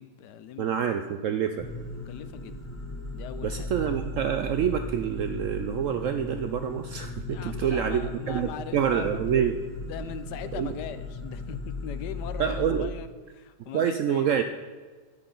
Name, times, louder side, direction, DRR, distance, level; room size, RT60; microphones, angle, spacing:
voice 1, 0.0-0.7 1.9-2.6 3.1-3.7 7.3-9.2 9.9-13.1 13.3-14.4, left 9 dB, 85° left, 12 dB, 1.2 m, -40 dB
voice 2, 0.6-1.7 3.4-9.6 10.5-10.7 12.4-12.9 13.7-14.4, right 8 dB, 75° right, 7 dB, 0.7 m, -27 dB
sound 1, 1.6-12.9, left 2 dB, 15° left, 0.6 m, -37 dB
11.5 x 8.9 x 3.9 m, 1.4 s
omnidirectional pair, 1.8 m